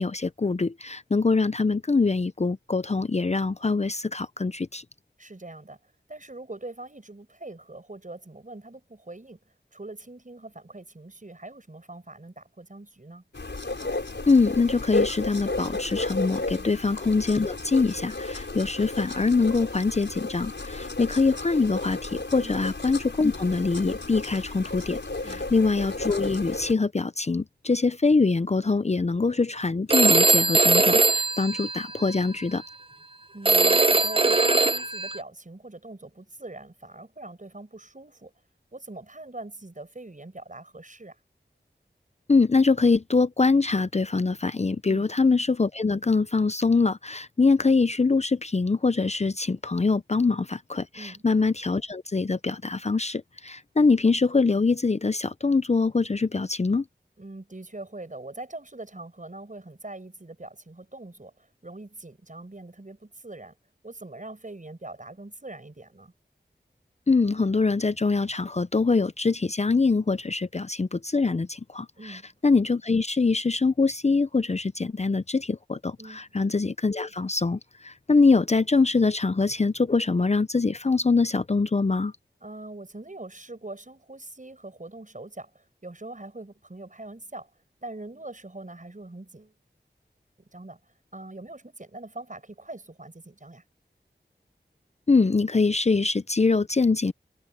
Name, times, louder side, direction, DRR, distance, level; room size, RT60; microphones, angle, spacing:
voice 1, 0.0-4.8 14.3-25.0 25.3-32.6 42.3-56.8 67.1-82.1 95.1-97.1, left 4 dB, 35° left, 0.5 m, -24 dB
voice 2, 5.2-5.8 6.1-9.4 9.7-13.2 16.5-16.7 22.4-22.6 25.2-25.4 33.3-38.3 38.7-41.2 44.9-45.1 50.9-51.2 57.2-63.5 63.8-66.1 72.0-72.3 76.0-76.3 82.4-87.5 87.8-89.5 90.5-93.6, right 2 dB, 45° right, 6.2 m, -42 dB
sound 1, 13.3-26.7, left 2 dB, 80° left, 5.3 m, -33 dB
Telephone, 29.9-32.2 33.4-35.2, right 3 dB, 30° right, 0.8 m, -21 dB
wide cardioid pair, 60°, 19 cm